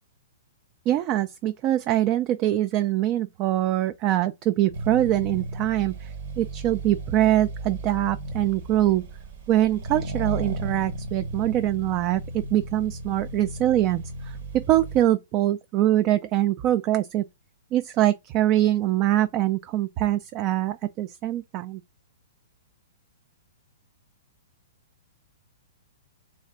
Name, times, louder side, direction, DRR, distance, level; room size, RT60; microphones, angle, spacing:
voice 1, 0.9-9.0 9.5-17.2 17.7-21.8, right 13 dB, 35° right, 0.3 m, -23 dB
Accelerating revving vroom, 4.7-15.1, right 2 dB, 60° right, 1.1 m, -35 dB
3.2 x 3.2 x 3.7 m
hypercardioid pair, 135°, 0 cm